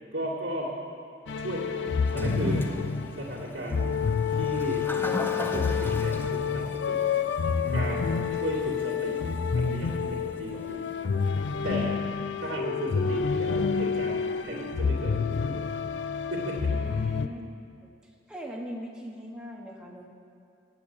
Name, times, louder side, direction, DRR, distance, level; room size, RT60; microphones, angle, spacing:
voice 1, 0.1-0.7 1.4-2.7 3.2-4.0 4.3-4.9 5.4-7.0 7.7-9.2 9.5-10.9 11.6-12.0 12.4-15.6 16.3-16.7, right 1 dB, 85° right, -9 dB, 2.3 m, -35 dB
sound 1, 1.3-17.3, left 6 dB, 70° left, 0.4 m, -28 dB
Toilet flush, 2.0-11.3, left 1 dB, 10° left, 0.7 m, -39 dB
voice 2, 7.4-8.1 11.4-11.7 16.7-17.5 17.8-17.9 18.3-20.1, equal, 5° right, -2 dB, 1.3 m, -41 dB
10.0 x 8.6 x 8.4 m, 2.3 s
head